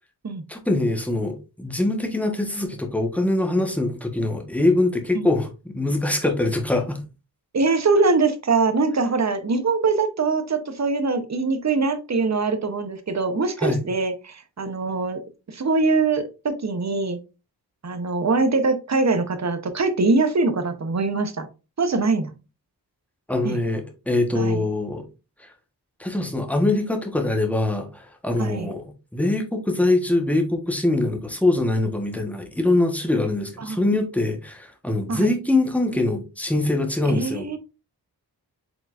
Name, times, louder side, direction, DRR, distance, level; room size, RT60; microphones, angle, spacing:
voice 1, 0.5-7.0 13.6-13.8 23.3-25.0 25.4-25.5 26.0-28.8 29.1-37.4, left 2 dB, 5° left, 1.2 m, -23 dB
voice 2, 7.5-15.2 15.5-17.2 17.8-21.5 21.8-22.3 23.4-23.6 24.3-24.7 28.4-28.8 33.6-33.8 35.1-35.3 37.0-37.6, right 3 dB, 40° right, 0.9 m, -23 dB
4.9 x 3.8 x 2.5 m
cardioid pair, 45°, 40 cm